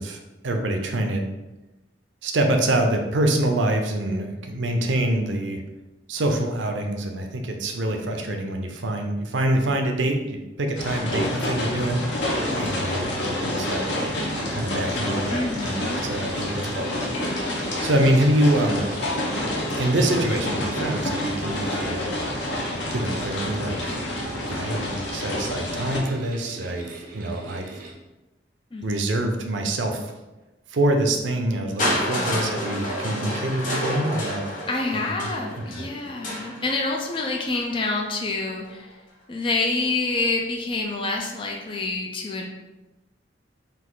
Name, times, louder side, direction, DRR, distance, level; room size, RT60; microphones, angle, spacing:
voice 1, 0.0-1.3 2.2-5.6 6.1-12.2 12.6-13.9 14.5-17.2 17.8-18.9 19.7-22.1 22.9-24.0 24.5-26.8 27.1-27.7 28.8-30.1 30.7-34.4 34.9-35.3 35.6-35.9, right 1 dB, 85° right, 4 dB, 0.6 m, -25 dB
sound 1, 10.8-26.0, left 1 dB, 75° left, 0.9 m, -28 dB
sound 2, 11.8-27.9, right 3 dB, 50° right, 0.8 m, -39 dB
voice 2, 15.3-16.0 17.8-18.0 21.8-22.0 28.7-29.1 32.2-32.4 34.7-39.0 39.3-42.5, left 3 dB, 30° left, 0 dB, 0.4 m, -27 dB
Crushing, 31.8-37.7 38.6-38.7, left 1 dB, 45° left, 1.0 m, -29 dB
4.1 x 2.6 x 3.8 m, 1.0 s
head